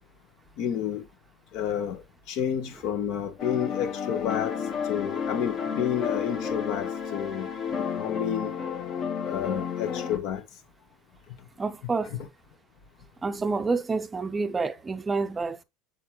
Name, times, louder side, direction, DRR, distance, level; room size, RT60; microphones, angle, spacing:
voice 1, 0.6-1.0 1.5-2.0 2.3-4.6 4.9-8.5 9.2-10.4, left 9 dB, 60° left, 1.4 m, -30 dB
sound 1, 3.4-10.2, left 6 dB, 40° left, 1.4 m, -32 dB
voice 2, 11.6-12.2 13.2-15.6, right 4 dB, 20° right, 0.6 m, -28 dB
7.0 x 4.4 x 3.1 m
hypercardioid pair, 95°, 0 cm